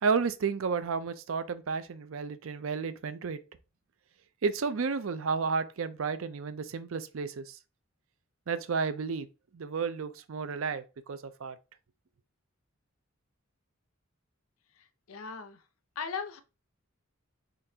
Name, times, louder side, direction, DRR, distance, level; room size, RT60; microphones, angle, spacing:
voice 1, 0.0-3.4 4.4-7.6 8.5-9.3 9.5-11.6, right 5 dB, 75° right, 0.5 m, -32 dB
voice 2, 14.8-15.6 16.0-16.4, left 5 dB, 85° left, 0.6 m, -38 dB
3.8 x 3.3 x 2.7 m
head